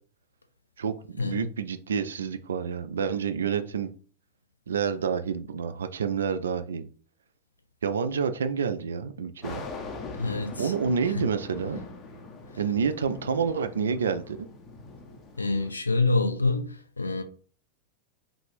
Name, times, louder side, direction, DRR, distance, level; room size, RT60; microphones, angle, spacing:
voice 1, 0.8-3.9 4.7-6.9 7.8-9.7 10.6-11.8 12.6-14.4, right 6 dB, 65° right, 0.3 m, -28 dB
sound 1, 9.4-15.7, left 3 dB, 30° left, 0.7 m, -42 dB
voice 2, 10.2-10.7 11.2-11.3 15.4-17.2, left 3 dB, 80° left, 0.5 m, -26 dB
3.7 x 2.4 x 3.3 m
figure-of-eight pair, 90°, 0 cm